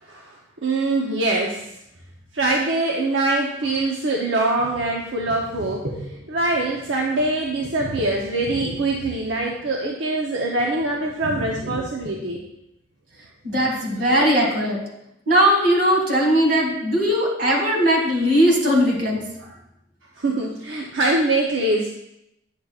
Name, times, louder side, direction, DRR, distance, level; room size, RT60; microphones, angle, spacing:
voice 1, 0.0-0.3 0.6-1.6 2.3-12.4 19.4-19.5 20.2-21.9, right 2 dB, 80° right, -1 dB, 0.8 m, -23 dB
voice 2, 13.4-14.8 15.3-19.2, equal, 55° right, -1 dB, 2.3 m, -19 dB
9.6 x 6.7 x 2.4 m, 0.83 s
head